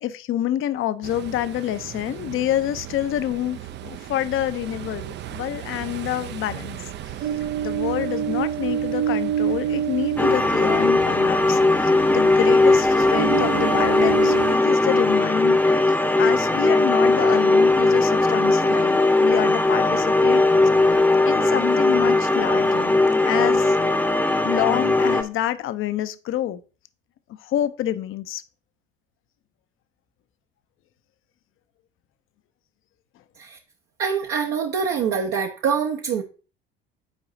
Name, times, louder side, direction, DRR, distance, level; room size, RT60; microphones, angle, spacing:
voice 1, 0.0-6.8 7.6-20.4 20.8-21.0 21.3-22.9 23.2-24.1 24.4-26.6 27.4-28.4, left 12 dB, 45° left, 0.6 m, -27 dB
Ocean, 1.0-14.6, right 9 dB, 40° right, 0.5 m, -30 dB
sound 1, 10.2-25.2, left 2 dB, 5° left, 0.8 m, -19 dB
voice 2, 34.0-36.2, right 6 dB, 55° right, 0.8 m, -24 dB
8.9 x 4.8 x 2.7 m
hypercardioid pair, 65°, 29 cm